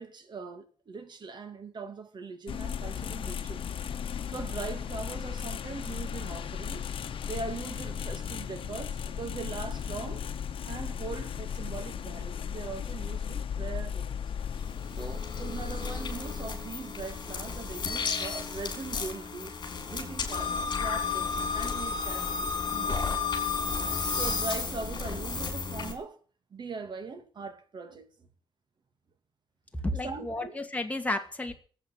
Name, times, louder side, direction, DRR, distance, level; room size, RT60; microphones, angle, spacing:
voice 1, 0.0-3.6 4.3-6.9 7.3-10.2 10.7-14.2 14.9-19.5 19.9-23.8 24.1-26.2 26.5-28.3 30.0-30.6, right 4 dB, 55° right, 2.4 m, -41 dB
sound 1, 2.5-18.5, left 8 dB, 75° left, 1.1 m, -36 dB
sound 2, 14.3-25.9, left 5 dB, 50° left, 4.3 m, -32 dB
voice 2, 29.8-31.5, left 1 dB, 15° left, 2.3 m, -32 dB
18.0 x 8.5 x 7.5 m
wide cardioid pair, 130°, 9 cm